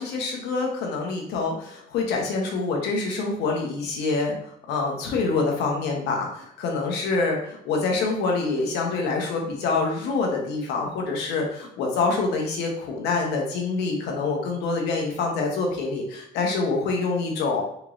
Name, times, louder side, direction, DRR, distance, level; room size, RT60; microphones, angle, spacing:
voice 1, 0.0-4.4 4.7-17.6, left 3 dB, 85° left, 1 dB, 1.0 m, -26 dB
4.3 x 3.0 x 2.6 m, 0.74 s
cardioid pair, 110°, 17 cm